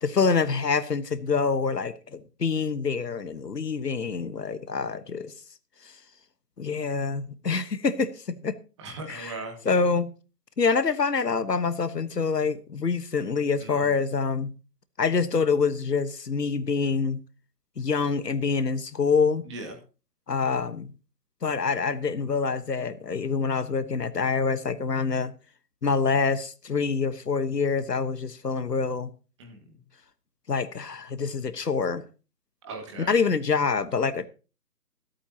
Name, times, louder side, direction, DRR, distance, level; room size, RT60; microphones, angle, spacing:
voice 1, 0.0-5.3 6.6-8.6 9.1-9.4 9.6-10.1 10.6-14.5 15.0-17.2 17.8-19.5 20.3-20.9 21.4-25.3 25.8-29.1 30.5-32.0 33.0-34.3, left 5 dB, 85° left, 1.4 m, -26 dB
voice 2, 8.8-9.5 13.6-13.9 19.5-19.7 29.4-29.7 32.6-33.1, right 3 dB, 20° right, 1.9 m, -38 dB
24.0 x 8.5 x 2.9 m
figure-of-eight pair, 160°, 48 cm